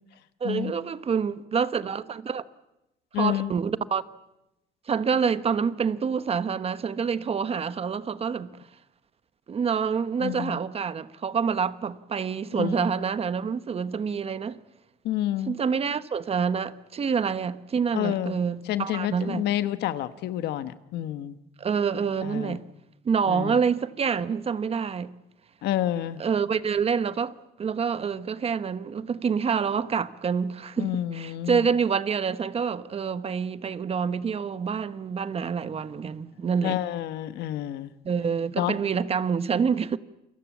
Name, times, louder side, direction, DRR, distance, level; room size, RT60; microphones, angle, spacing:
voice 1, 0.4-2.4 3.2-4.0 4.9-8.5 9.5-14.6 15.4-19.5 21.6-22.6 23.0-25.1 26.2-36.8 38.0-40.0, right 6 dB, 35° right, 1.1 m, -27 dB
voice 2, 3.1-3.5 10.2-10.6 12.5-12.9 15.0-15.6 17.9-18.4 18.7-21.3 22.2-22.6 23.3-23.6 25.6-26.2 30.8-31.6 36.6-37.9 38.6-38.7, left 13 dB, 80° left, 1.3 m, -29 dB
28.5 x 23.0 x 7.3 m
cardioid pair, 110°, 17 cm